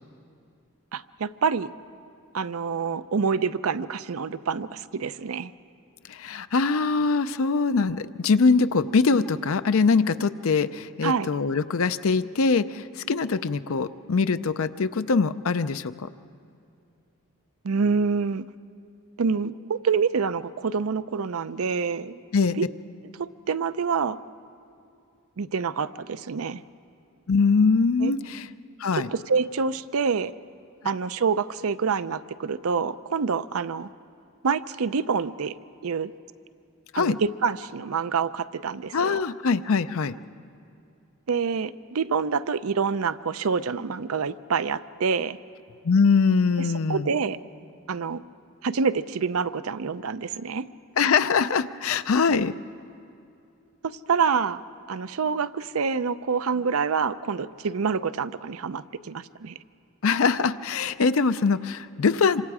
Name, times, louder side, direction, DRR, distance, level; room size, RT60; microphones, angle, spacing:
voice 1, 0.9-1.7 2.3-5.5 11.0-11.3 17.6-18.4 19.2-22.2 22.6-22.7 23.2-24.2 25.4-26.6 28.0-28.1 28.9-30.3 30.8-33.9 34.4-35.6 35.8-36.1 37.0-39.2 41.3-45.4 46.9-47.4 47.9-48.2 48.6-50.6 54.1-54.6 54.9-59.5, right 5 dB, 80° right, 15 dB, 0.5 m, -26 dB
voice 2, 6.1-16.1 22.3-22.6 27.3-28.5 28.8-29.1 36.9-37.2 38.9-40.1 45.8-47.1 51.0-52.6 60.0-62.4, left 4 dB, 70° left, 12 dB, 0.5 m, -23 dB
27.0 x 24.5 x 4.9 m, 2.5 s
head